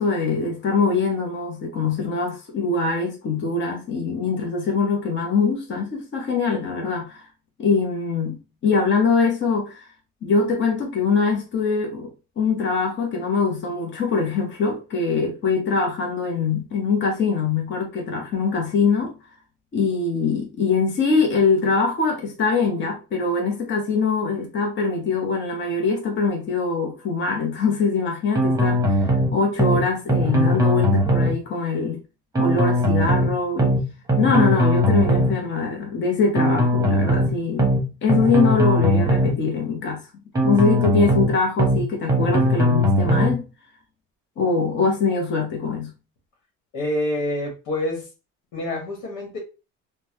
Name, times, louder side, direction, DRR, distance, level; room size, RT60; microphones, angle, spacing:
voice 1, 0.0-7.2 7.6-9.8 10.2-19.1 19.7-32.0 32.4-33.7 34.2-37.7 38.0-40.0 40.4-43.5 44.4-45.9, left 4 dB, 40° left, 0.9 m, -23 dB
sound 1, 28.3-29.3 29.6-29.8 30.1-31.3 32.3-33.3 33.6-33.8 34.1-35.3 36.3-37.3 37.6-37.8 38.1-39.3 40.3-41.3 41.6-41.8 42.1-43.3, equal, 10° right, 0.9 m, -19 dB
voice 2, 46.7-48.1 48.5-49.4, left 1 dB, 80° left, 1.2 m, -27 dB
3.0 x 2.2 x 2.8 m
cardioid pair, 110°, 30 cm